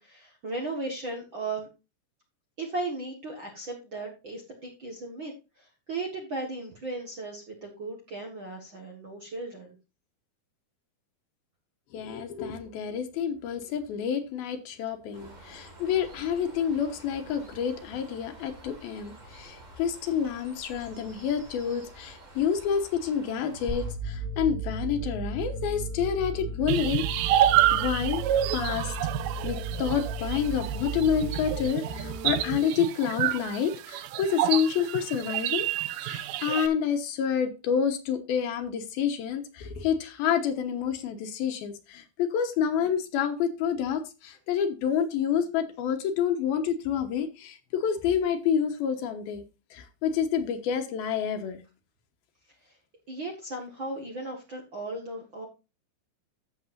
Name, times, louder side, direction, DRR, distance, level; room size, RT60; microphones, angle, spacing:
voice 1, 0.0-1.7 2.6-9.8 52.5-52.8 53.1-55.4, right 2 dB, 50° right, 1.5 m, -36 dB
voice 2, 11.9-27.4 27.7-28.2 28.5-28.9 29.4-35.7 36.0-49.4 49.7-51.6, left 8 dB, 75° left, 2.9 m, -28 dB
Bird, 15.1-23.9, right 1 dB, 30° right, 0.7 m, -49 dB
sound 1, 23.7-32.7, right 3 dB, 10° right, 1.5 m, -35 dB
sound 2, 26.7-36.7, right 12 dB, 85° right, 1.9 m, -28 dB
14.0 x 7.3 x 2.6 m
omnidirectional pair, 4.5 m